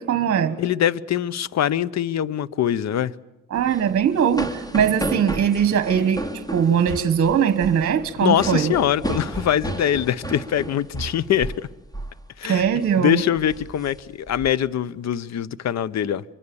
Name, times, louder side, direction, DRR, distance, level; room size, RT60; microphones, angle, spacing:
voice 1, 0.0-0.6 3.5-6.2 6.5-8.7 12.4-13.2, right 8 dB, 50° right, 1.5 m, -20 dB
voice 2, 0.6-3.1 8.2-11.7 12.4-12.6 13.0-16.2, left 10 dB, 60° left, 0.9 m, -23 dB
sound 1, 3.6-11.7 11.9-12.2 12.6-12.9 13.4-14.5, right 1 dB, 10° left, 2.8 m, -32 dB
25.0 x 24.0 x 7.1 m
cardioid pair, 90°, 30 cm